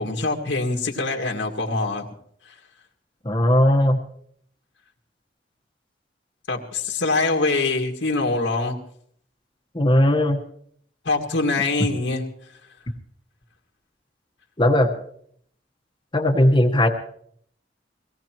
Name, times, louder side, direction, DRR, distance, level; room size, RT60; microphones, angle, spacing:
voice 1, 0.0-2.0 2.5-2.6 6.5-8.8 11.1-12.2, left 3 dB, 90° left, 1 dB, 2.0 m, -24 dB
voice 2, 3.2-4.0 9.7-10.4 14.6-14.9 16.1-16.9, left 1 dB, 25° left, 4 dB, 1.2 m, -17 dB
23.5 x 17.5 x 3.0 m, 0.65 s
head